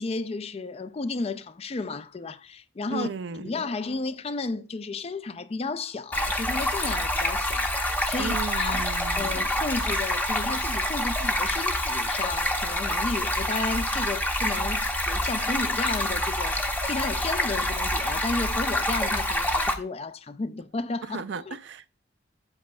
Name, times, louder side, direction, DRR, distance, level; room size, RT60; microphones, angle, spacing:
voice 1, 0.0-3.1 3.4-7.7 8.0-16.6 16.9-21.6, left 3 dB, 35° left, 0.4 m, -33 dB
voice 2, 2.9-3.5 8.2-9.2 21.1-21.9, right 5 dB, 70° right, 0.4 m, -34 dB
Stream, 6.1-19.7, left 1 dB, 10° left, 0.8 m, -27 dB
8.2 x 7.8 x 2.2 m
head